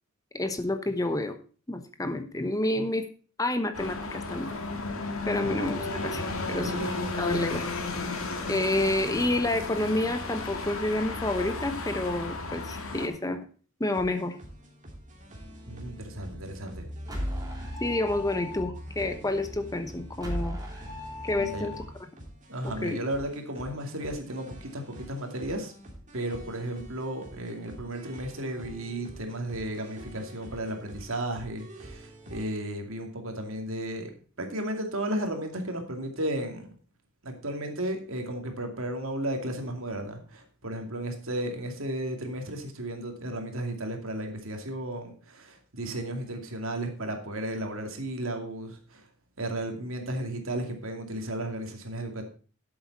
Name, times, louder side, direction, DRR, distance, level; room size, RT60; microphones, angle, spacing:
voice 1, 0.3-1.4 1.7-3.1 3.4-4.5 5.3-6.7 7.2-7.6 8.5-13.5 13.8-14.3 17.8-20.6 21.2-21.7 22.6-23.0, left 1 dB, 15° left, 8 dB, 0.9 m, -29 dB
sound 1, 3.7-13.1, left 3 dB, 75° left, 2.2 m, -33 dB
voice 2, 6.6-7.1 15.7-16.9 21.4-21.7 22.5-25.7 26.1-34.1 34.4-36.7 37.2-49.0 49.4-52.2, right 1 dB, 70° right, 4 dB, 2.5 m, -34 dB
sound 2, 13.8-32.5, right 1 dB, 35° right, 2.7 m, -47 dB
sound 3, 15.0-21.9, left 1 dB, 20° right, 2.9 m, -38 dB
12.0 x 7.9 x 4.1 m, 0.39 s
head